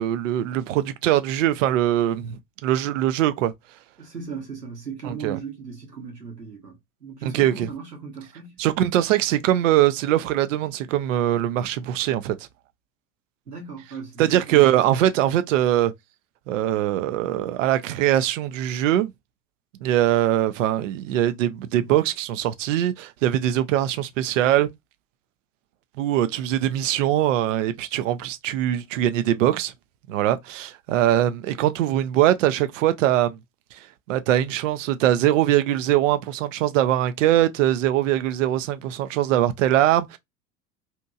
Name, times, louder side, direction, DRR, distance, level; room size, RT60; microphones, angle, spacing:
voice 1, 0.0-2.4 2.6-3.5 5.0-5.4 7.2-7.7 8.6-12.3 14.2-15.9 16.5-19.1 19.8-24.7 26.0-29.7 30.1-33.4 34.1-40.2, right 12 dB, 55° right, 0.5 m, -22 dB
voice 2, 4.0-6.7 7.0-8.6 13.5-15.0, right 5 dB, 85° right, 1.0 m, -37 dB
2.8 x 2.6 x 2.3 m
figure-of-eight pair, 80°, 46 cm